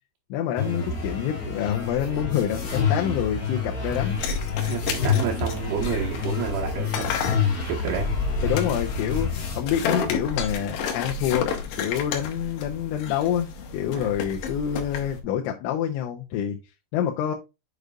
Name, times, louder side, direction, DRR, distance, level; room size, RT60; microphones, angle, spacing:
voice 1, 0.3-4.2 8.4-16.6 16.9-17.4, left 10 dB, 90° left, 3.2 m, -27 dB
sound 1, 0.6-9.6, left 6 dB, 45° left, 2.8 m, -28 dB
sound 2, 3.9-15.2, left 5 dB, 70° left, 3.0 m, -31 dB
voice 2, 4.6-7.2 7.7-8.1 13.9-14.1, right 8 dB, 70° right, 3.1 m, -30 dB
7.9 x 6.6 x 2.4 m
omnidirectional pair, 5.4 m